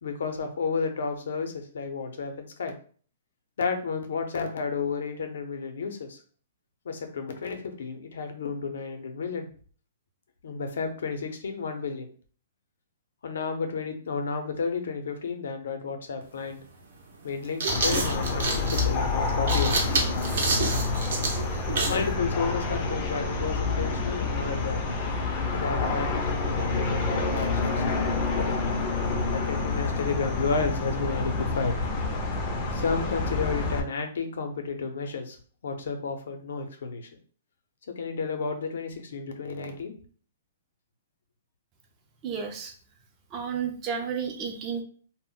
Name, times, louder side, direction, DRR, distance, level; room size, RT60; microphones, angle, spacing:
voice 1, 0.0-2.8 3.6-6.2 6.8-9.5 10.4-12.1 13.2-16.6 17.2-19.9 21.9-24.8 25.5-27.8 28.4-28.6 29.3-31.7 32.7-35.4 35.6-37.1 37.9-39.9, left 4 dB, 75° left, 5 dB, 0.6 m, -32 dB
sound 1, 16.2-16.3 17.3-22.1, right 3 dB, 65° right, 0.7 m, -28 dB
sound 2, 17.7-33.8, left 3 dB, 30° left, 0.5 m, -28 dB
voice 2, 42.2-42.7 43.3-44.8, right 7 dB, 25° right, 3 dB, 0.5 m, -32 dB
2.1 x 2.0 x 3.7 m, 0.43 s
hypercardioid pair, 160°, 0 cm